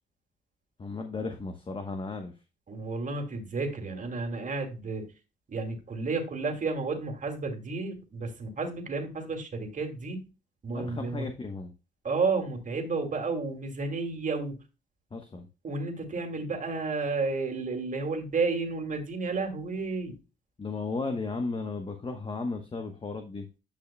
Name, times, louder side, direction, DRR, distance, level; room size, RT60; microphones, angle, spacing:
voice 1, 0.8-2.3 10.7-11.7 15.1-15.5 20.6-23.5, left 3 dB, 25° left, 5 dB, 1.0 m, -35 dB
voice 2, 2.7-5.0 5.5-10.3 10.6-11.3 12.0-14.6 15.6-20.1, right 4 dB, 40° right, 3 dB, 2.3 m, -31 dB
10.0 x 5.6 x 2.2 m, 0.30 s
cardioid pair, 90°, 20 cm